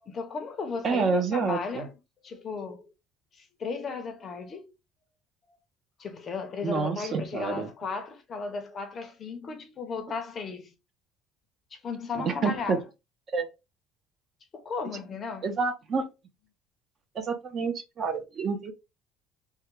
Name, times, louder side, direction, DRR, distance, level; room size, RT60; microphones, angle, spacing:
voice 1, 0.0-1.9 2.2-2.9 3.3-4.7 6.0-10.7 11.7-12.8 14.5-15.5, left 5 dB, 30° left, 0.6 m, -35 dB
voice 2, 0.8-1.9 6.6-7.7 12.2-12.8 13.3-13.5 15.4-16.0 17.2-18.7, right 4 dB, 30° right, 0.5 m, -28 dB
3.5 x 2.1 x 3.0 m
cardioid pair, 160°, 0 cm